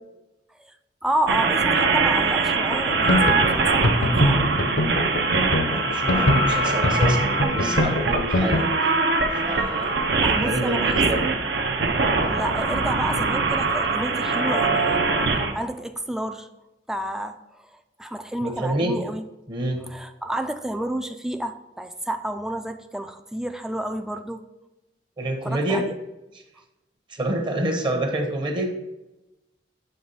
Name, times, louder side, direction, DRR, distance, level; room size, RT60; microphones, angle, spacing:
voice 1, 1.0-4.5 10.2-11.4 12.3-16.5 16.9-17.7 18.0-19.2 19.9-24.4 25.4-26.0, right 1 dB, 5° right, 7 dB, 0.3 m, -30 dB
sound 1, 1.3-15.5, right 3 dB, 70° right, 0.7 m, -22 dB
sound 2, 2.7-8.7, left 1 dB, 70° left, 0.8 m, -22 dB
voice 2, 5.7-8.7 9.4-9.9 10.4-11.2 18.4-18.9 19.5-19.8 25.2-25.9 27.1-28.7, right 1 dB, 25° right, 4 dB, 0.8 m, -27 dB
7.9 x 3.1 x 5.3 m, 0.99 s
head